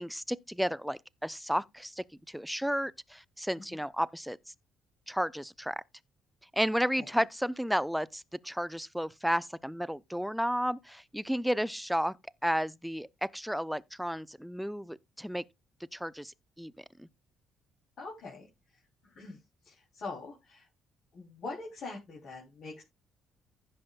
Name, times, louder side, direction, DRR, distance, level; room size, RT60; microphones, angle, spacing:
voice 1, 0.0-4.4 5.1-5.8 6.5-12.1 12.4-15.4 15.9-16.3 16.6-17.1, equal, ahead, 0.5 m, -32 dB
voice 2, 18.0-18.5 19.0-19.4 19.6-20.7 21.1-22.8, left 3 dB, 60° left, 3.3 m, -43 dB
15.5 x 5.5 x 2.4 m
hypercardioid pair, 50°, 0 cm